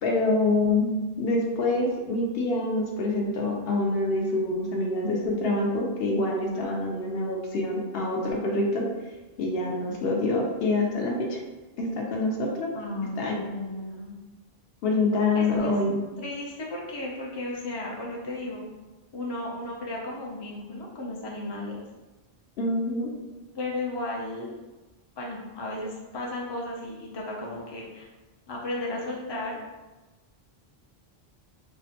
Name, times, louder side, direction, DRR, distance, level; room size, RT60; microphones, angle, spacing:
voice 1, 0.0-8.9 9.4-11.4 11.8-12.7 13.2-13.4 14.8-16.0 22.6-23.1, left 2 dB, 75° left, 0 dB, 0.8 m, -26 dB
voice 2, 12.7-14.2 15.3-15.7 16.2-18.6 19.1-21.8 23.5-24.6 25.2-28.1 28.5-29.6, left 2 dB, 40° left, -3 dB, 0.3 m, -34 dB
3.6 x 2.1 x 2.8 m, 1.2 s
omnidirectional pair, 1.0 m